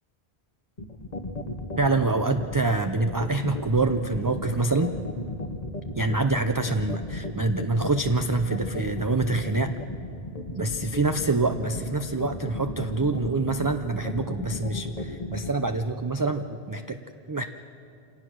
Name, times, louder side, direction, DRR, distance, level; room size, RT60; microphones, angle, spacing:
sound 1, 0.8-15.5, left 2 dB, 40° left, 1.3 m, -34 dB
voice 1, 1.8-4.9 5.9-9.7 10.5-17.0 17.3-17.4, right 3 dB, 25° right, 7 dB, 0.5 m, -26 dB
27.0 x 18.0 x 6.3 m, 2.5 s
omnidirectional pair, 1.1 m